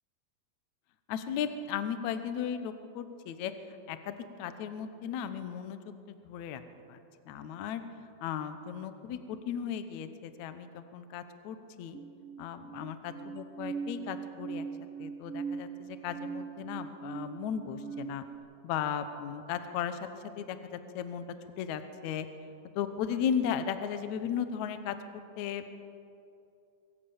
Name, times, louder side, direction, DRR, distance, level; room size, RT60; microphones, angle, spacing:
voice 1, 1.1-3.5 3.9-6.6 6.9-7.0 7.3-7.8 8.2-12.0 12.4-14.7 15.0-18.2 18.6-21.2 21.6-22.3 22.8-25.6, left 8 dB, 70° left, 10 dB, 1.9 m, -36 dB
sound 1, 11.9-18.4, right 6 dB, 90° right, 1.2 m, -41 dB
25.5 x 14.5 x 7.2 m, 2.6 s
omnidirectional pair, 4.3 m